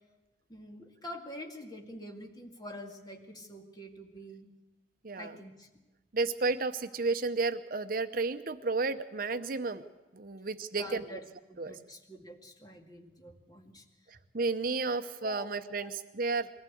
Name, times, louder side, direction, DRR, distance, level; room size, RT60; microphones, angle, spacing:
voice 1, 0.5-4.5 5.2-5.7 10.7-13.8 15.2-15.5 15.8-15.9, equal, 20° left, 2 dB, 2.2 m, -46 dB
voice 2, 5.0-5.4 6.1-9.8 10.1-11.2 11.6-11.8 14.1-16.5, right 3 dB, 50° right, 10 dB, 0.8 m, -32 dB
22.0 x 15.5 x 8.4 m, 1.1 s
head